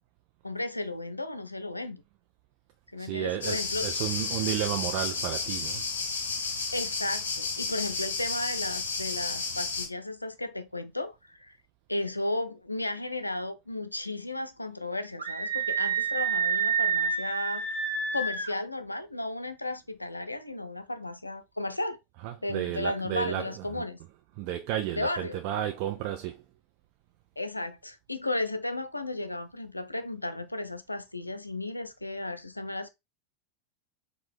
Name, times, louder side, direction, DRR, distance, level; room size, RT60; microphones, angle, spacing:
voice 1, 0.4-2.0 2.9-3.9 6.7-11.6 11.9-17.7 18.1-22.0 22.4-24.0 25.0-25.4 27.4-32.9, left 2 dB, 85° left, 0.4 m, -34 dB
voice 2, 3.0-5.8 22.2-23.8 24.4-26.4, right 12 dB, 50° right, 0.4 m, -32 dB
sound 1, 3.4-9.9, left 4 dB, 65° left, 0.8 m, -32 dB
Screaming, 15.2-18.5, right 5 dB, 75° right, 1.1 m, -28 dB
4.5 x 2.2 x 3.5 m
figure-of-eight pair, 85°, 0 cm